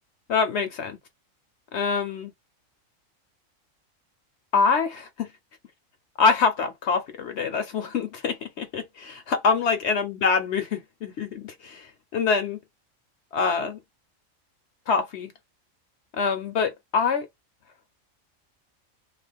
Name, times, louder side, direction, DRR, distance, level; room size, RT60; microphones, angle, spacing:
voice 1, 0.3-1.0 1.7-2.3 4.5-5.3 6.2-11.9 12.1-12.6 13.3-13.8 14.9-15.3 16.2-17.3, left 5 dB, 65° left, 0.9 m, -25 dB
2.4 x 2.4 x 3.4 m
omnidirectional pair, 1.4 m